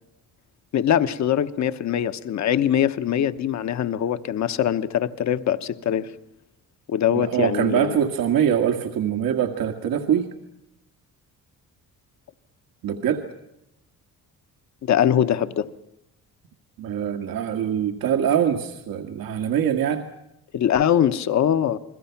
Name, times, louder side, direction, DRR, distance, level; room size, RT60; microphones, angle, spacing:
voice 1, 0.7-6.1 6.9-8.0 14.8-15.7 20.5-21.8, left 9 dB, 50° left, 12 dB, 1.1 m, -22 dB
voice 2, 7.2-10.3 12.8-13.2 16.8-20.0, right 9 dB, 80° right, 4 dB, 1.9 m, -23 dB
29.5 x 22.0 x 5.9 m, 0.85 s
cardioid pair, 155°, 34 cm